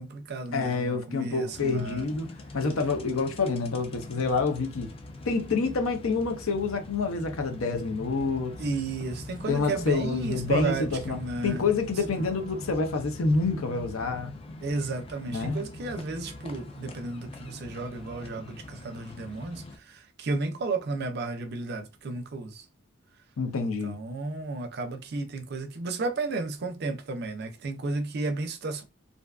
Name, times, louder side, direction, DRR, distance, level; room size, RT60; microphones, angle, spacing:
voice 1, 0.0-2.1 8.6-11.6 14.6-22.7 23.8-28.8, right 3 dB, 50° right, 0.4 m, -33 dB
voice 2, 0.5-2.3 2.5-4.9 5.3-8.5 9.5-11.2 11.4-14.3 15.3-15.6 23.4-24.0, left 4 dB, 90° left, 0.6 m, -27 dB
sound 1, 1.5-19.8, left 2 dB, 25° left, 0.3 m, -43 dB
2.5 x 2.3 x 2.3 m
head